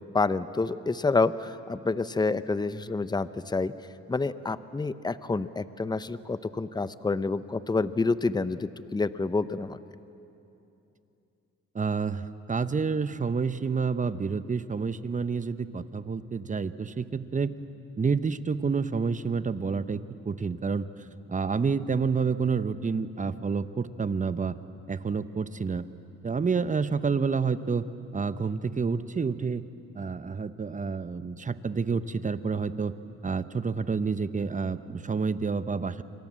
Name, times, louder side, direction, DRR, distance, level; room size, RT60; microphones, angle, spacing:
voice 1, 0.1-3.7 4.1-9.8, left 3 dB, 15° left, 14 dB, 0.8 m, -28 dB
voice 2, 11.7-17.6 18.0-20.9 21.3-24.6 24.9-25.9 26.2-27.9 28.1-29.7 29.9-32.9 33.2-36.0, right 5 dB, 25° right, 13 dB, 1.0 m, -29 dB
28.0 x 25.0 x 7.6 m, 2.9 s
cardioid pair, 90°, 30 cm